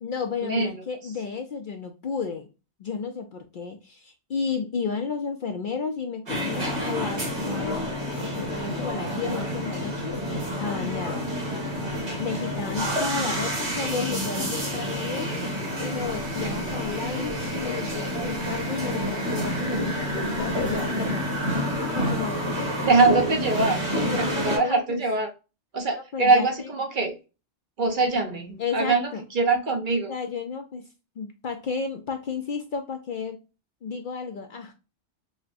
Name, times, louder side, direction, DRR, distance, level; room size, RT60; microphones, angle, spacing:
voice 1, 0.0-2.4 2.8-8.0 8.4-10.2 10.6-11.3 12.2-15.4 15.8-21.3 21.9-22.6 23.9-25.0 25.9-26.7 28.6-29.2 30.1-30.8 31.2-33.4 33.8-34.7, left 5 dB, 60° left, 0.6 m, -32 dB
sound 1, 6.3-24.6, equal, 70° right, 2.0 m, -28 dB
voice 2, 22.8-23.8 24.2-25.3 25.7-27.1 27.8-29.1 29.3-30.1, right 3 dB, 50° right, 0.8 m, -23 dB
6.2 x 2.1 x 2.5 m
omnidirectional pair, 1.2 m